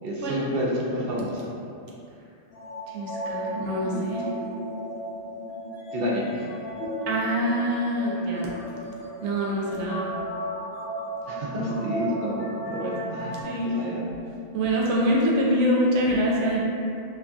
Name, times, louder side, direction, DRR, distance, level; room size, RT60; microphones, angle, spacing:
voice 1, 0.0-1.5 5.9-6.4 11.3-14.0, equal, 65° right, -4 dB, 0.7 m, -29 dB
sound 1, 2.5-13.4, equal, 65° left, 0.9 m, -34 dB
voice 2, 2.9-4.3 7.1-8.5 9.2-10.1 13.4-13.7 14.5-16.6, equal, 85° right, -3 dB, 0.9 m, -25 dB
2.9 x 2.6 x 2.3 m, 2.5 s
omnidirectional pair, 1.2 m